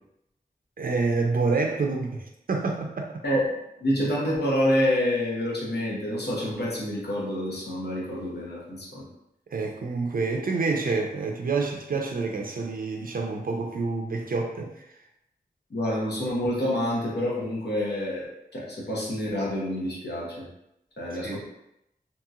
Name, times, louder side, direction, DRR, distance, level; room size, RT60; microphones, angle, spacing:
voice 1, 0.8-3.1 9.5-14.8 21.2-21.4, right 4 dB, 60° right, 1 dB, 0.4 m, -28 dB
voice 2, 3.8-9.1 15.7-18.3 18.5-20.5 21.0-21.4, equal, 85° left, -5 dB, 0.9 m, -27 dB
2.9 x 2.8 x 2.4 m, 0.84 s
wide cardioid pair, 75°, 17 cm